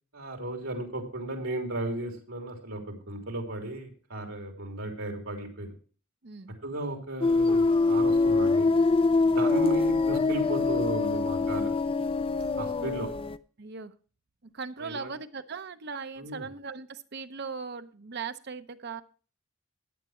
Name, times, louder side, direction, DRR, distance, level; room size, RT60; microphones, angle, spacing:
voice 1, 0.1-5.7 6.6-8.7 9.3-11.7 12.6-13.1 14.8-15.1 16.2-16.4, right 1 dB, 85° right, 2 dB, 3.2 m, -35 dB
voice 2, 6.2-6.5 11.1-11.5 13.6-13.9 14.4-19.0, right 5 dB, 55° right, 10 dB, 0.7 m, -39 dB
sound 1, 7.2-13.4, left 3 dB, 25° left, 0.4 m, -24 dB
14.0 x 9.7 x 3.1 m, 0.39 s
head